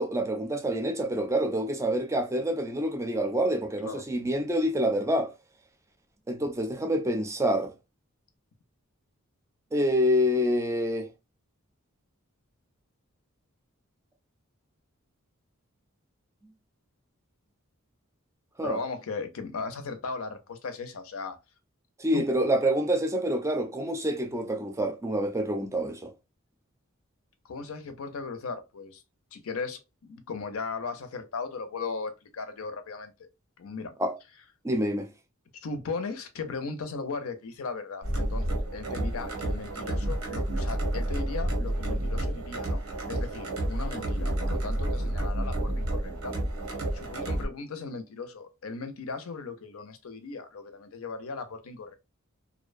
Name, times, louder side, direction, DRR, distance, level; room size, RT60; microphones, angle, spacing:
voice 1, 0.0-5.3 6.3-7.7 9.7-11.1 18.6-18.8 22.0-26.1 34.0-34.2 34.6-35.1, equal, 15° right, 0.4 m, -27 dB
voice 2, 18.6-21.4 22.1-22.3 27.4-29.0 29.3-33.3 33.6-33.9 35.6-42.8 43.1-46.3 46.9-52.0, left 4 dB, 80° left, 0.6 m, -37 dB
sound 1, 38.0-47.5, right 1 dB, 90° right, 0.9 m, -30 dB
2.6 x 2.1 x 2.4 m
head